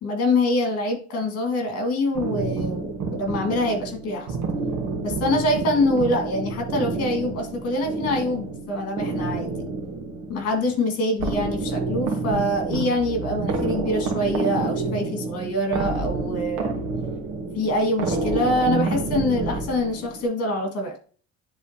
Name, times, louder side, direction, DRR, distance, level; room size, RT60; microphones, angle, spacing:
voice 1, 0.0-4.3 5.0-9.7 10.3-16.9 17.6-21.0, left 1 dB, 55° left, 4 dB, 2.1 m, -25 dB
sound 1, 2.1-20.3, right 3 dB, 70° right, 1.6 m, -29 dB
9.8 x 3.8 x 2.9 m, 0.42 s
cardioid pair, 150°, 29 cm